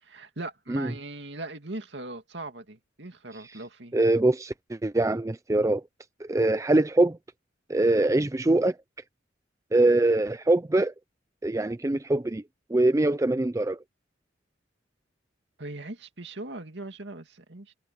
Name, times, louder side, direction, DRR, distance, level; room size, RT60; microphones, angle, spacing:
voice 1, 0.0-4.0 15.6-17.7, right 2 dB, 70° right, 2.4 m, -39 dB
voice 2, 3.9-5.8 6.2-7.2 7.7-8.8 9.7-10.9 11.4-12.4 12.7-13.8, right 2 dB, 15° right, 0.4 m, -23 dB
head